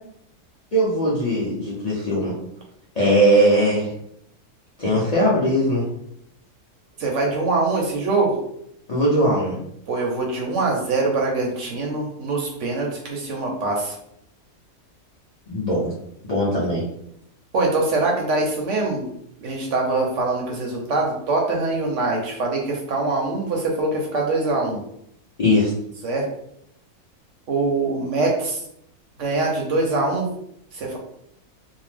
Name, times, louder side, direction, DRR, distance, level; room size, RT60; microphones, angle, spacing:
voice 1, 0.7-2.3 2.9-3.9 4.8-5.9 8.9-9.6 15.5-15.9 16.3-16.8 25.4-25.7, equal, 80° left, -7 dB, 0.3 m, -19 dB
voice 2, 7.0-8.4 9.9-13.9 17.5-19.1 19.4-24.8 26.0-26.2 27.5-28.6 29.2-30.3 30.7-31.0, right 3 dB, 65° right, -1 dB, 0.8 m, -23 dB
2.7 x 2.0 x 3.3 m, 0.74 s
omnidirectional pair, 1.7 m